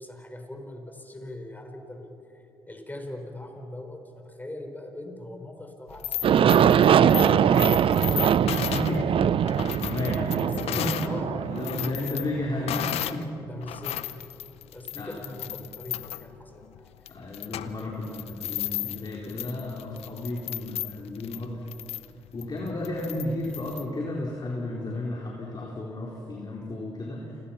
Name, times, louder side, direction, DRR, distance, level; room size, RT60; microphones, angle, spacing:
voice 1, 0.0-2.1 2.7-6.4 6.8-9.1 10.4-10.5 11.0-11.6 13.5-14.3 14.7-16.9, left 1 dB, 15° left, 4 dB, 4.7 m, -41 dB
sound 1, 5.9-11.1 11.5-13.2 13.6-23.8, left 13 dB, 75° left, 0.7 m, -35 dB
Aircraft, 6.2-12.9, right 8 dB, 60° right, 0.6 m, -22 dB
voice 2, 6.3-7.5 8.6-9.1 9.8-11.1 11.5-13.3 15.0-15.5 17.1-21.5 22.3-27.3, left 2 dB, 40° left, -2 dB, 4.2 m, -33 dB
28.5 x 21.5 x 5.9 m, 2.9 s
hypercardioid pair, 50°, 11 cm